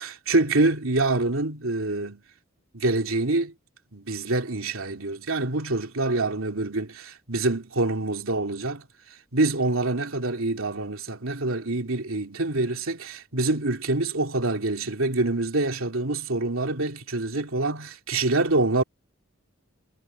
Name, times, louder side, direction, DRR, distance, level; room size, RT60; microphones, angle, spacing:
voice 1, 0.0-2.2 2.7-3.5 3.9-8.9 9.3-18.8, right 2 dB, 85° right, 2.9 m, -26 dB
head